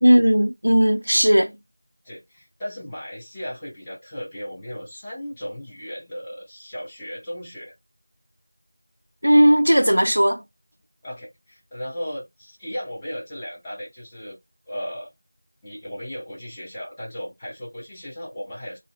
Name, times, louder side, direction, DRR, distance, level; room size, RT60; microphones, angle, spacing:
voice 1, 0.0-1.5 9.2-10.4, equal, 85° right, 0.3 m, -16 dB
voice 2, 2.0-7.7 11.0-14.4 14.7-15.1 15.6-18.8, equal, 5° left, 0.4 m, -36 dB
2.7 x 2.5 x 2.4 m
figure-of-eight pair, 180°, 0 cm